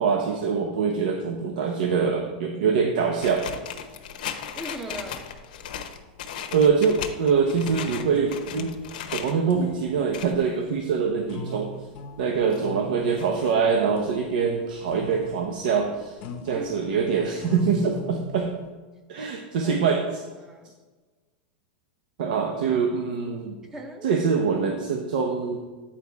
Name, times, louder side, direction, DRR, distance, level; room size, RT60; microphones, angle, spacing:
voice 1, 0.0-3.5 6.5-8.7 9.1-11.7 12.2-16.2 16.4-18.5 19.1-20.2 22.2-23.6 24.0-25.6, right 5 dB, 70° right, 2 dB, 0.9 m, -24 dB
sound 1, 3.2-9.3 9.8-10.4 10.9-11.0 11.4-11.5 12.1-12.7 13.2-13.5 14.1-14.2 14.5-14.6 14.8-14.9, left 9 dB, 75° left, 0.8 m, -36 dB
voice 2, 4.5-5.3 16.5-16.8 19.6-19.7 20.4-20.7 23.7-24.2, right 1 dB, 10° right, 4 dB, 0.8 m, -38 dB
sound 2, 4.7-4.8 5.1-18.6, left 2 dB, 35° left, 0.7 m, -42 dB
8.9 x 4.2 x 4.7 m, 1.3 s
supercardioid pair, 160°, 5 cm